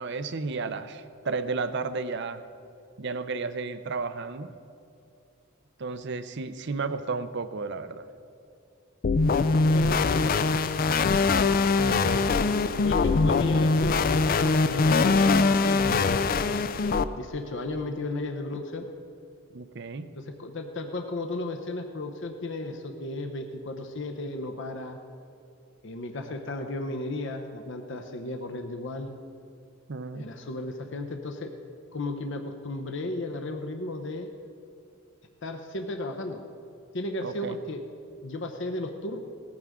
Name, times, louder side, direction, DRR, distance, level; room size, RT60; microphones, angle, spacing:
voice 1, 0.0-2.4 3.0-4.5 5.8-8.0 19.5-20.1 29.9-30.3 37.2-37.6, right 4 dB, 60° right, 12 dB, 0.6 m, -33 dB
sound 1, 9.0-17.0, left 4 dB, 45° left, 0.4 m, -22 dB
voice 2, 9.6-10.6 12.8-16.2 17.2-18.9 20.2-25.0 25.8-29.1 30.1-31.5 31.9-34.3 35.4-36.4 36.9-37.8 38.2-39.2, left 2 dB, 60° left, 5 dB, 0.8 m, -34 dB
18.0 x 14.5 x 3.7 m, 2.5 s
head